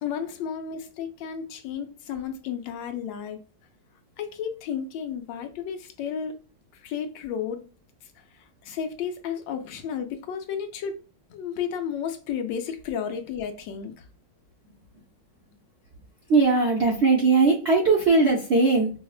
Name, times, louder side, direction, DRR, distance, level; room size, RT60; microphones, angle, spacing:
voice 1, 0.0-3.4 4.2-6.3 6.8-7.6 8.6-11.0 11.3-13.9, left 7 dB, 80° left, 1.3 m, -32 dB
voice 2, 16.3-18.9, right 3 dB, 65° right, 0.6 m, -19 dB
4.7 x 2.1 x 2.4 m
omnidirectional pair, 2.0 m